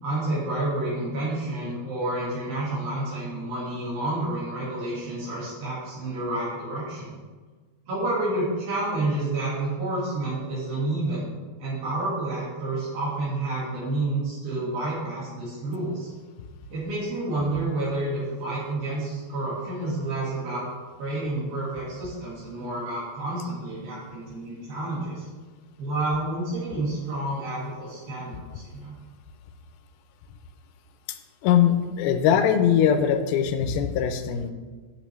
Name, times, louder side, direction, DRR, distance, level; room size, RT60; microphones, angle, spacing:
voice 1, 0.0-7.2 7.9-11.3 11.6-16.1 16.7-20.6 21.0-25.2 25.8-29.0, right 2 dB, 75° right, -8 dB, 3.6 m, -29 dB
voice 2, 31.4-34.5, left 8 dB, 85° left, 9 dB, 2.5 m, -21 dB
9.0 x 7.4 x 3.1 m, 1.4 s
omnidirectional pair, 4.3 m